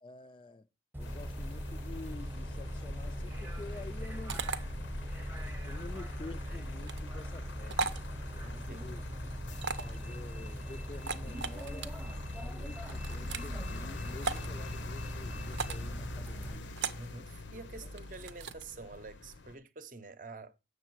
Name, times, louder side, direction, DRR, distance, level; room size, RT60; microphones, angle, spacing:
voice 1, 0.0-0.7 1.0-4.5 5.6-7.9 8.3-9.0 9.8-12.0 12.4-16.7 17.8-17.9, left 3 dB, 30° left, 0.3 m, -49 dB
Bus, 0.9-16.6, equal, 10° right, 0.8 m, -41 dB
sound 1, 1.0-19.6, left 2 dB, 85° left, 0.7 m, -43 dB
sound 2, 4.3-4.6 6.8-7.0 7.7-8.0 9.6-10.0 10.9-11.9 12.8-13.5 14.2-14.5 15.5-15.9 16.8-17.1 18.0-18.6, right 4 dB, 80° right, 0.7 m, -36 dB
voice 2, 8.5-9.2 17.0-20.5, right 3 dB, 45° right, 0.7 m, -48 dB
7.9 x 6.5 x 4.5 m
head